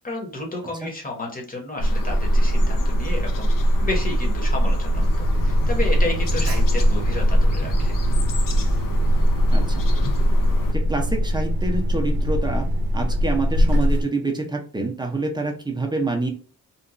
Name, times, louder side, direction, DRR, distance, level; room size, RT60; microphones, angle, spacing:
voice 1, 0.0-3.5 3.8-7.9, left 2 dB, 25° left, 0 dB, 0.9 m, -31 dB
sound 1, 1.8-10.7, equal, 65° left, 0.5 m, -21 dB
Alarm, 4.9-14.0, equal, 75° right, 0.6 m, -23 dB
voice 2, 9.5-9.8 10.7-12.7 12.9-16.3, right 2 dB, 10° right, 2 dB, 0.5 m, -27 dB
2.9 x 2.2 x 2.4 m, 0.41 s
wide cardioid pair, 155°, 36 cm